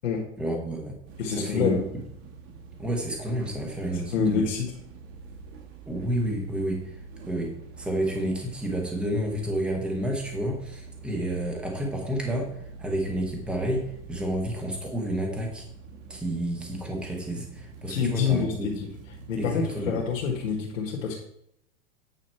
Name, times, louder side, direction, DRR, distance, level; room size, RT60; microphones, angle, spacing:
voice 1, 0.4-1.0 1.3-1.8 2.8-4.5 5.9-6.9 7.3-12.5 12.8-15.6 16.1-18.7 19.4-20.0, right 1 dB, 5° right, 1 dB, 0.7 m, -30 dB
sound 1, 1.0-20.5, right 4 dB, 75° right, 1.7 m, -45 dB
voice 2, 1.2-1.9 4.1-4.8 17.9-18.9 19.3-21.2, left 6 dB, 90° left, -1 dB, 1.7 m, -27 dB
8.9 x 5.6 x 4.4 m, 0.74 s
supercardioid pair, 175°, 38 cm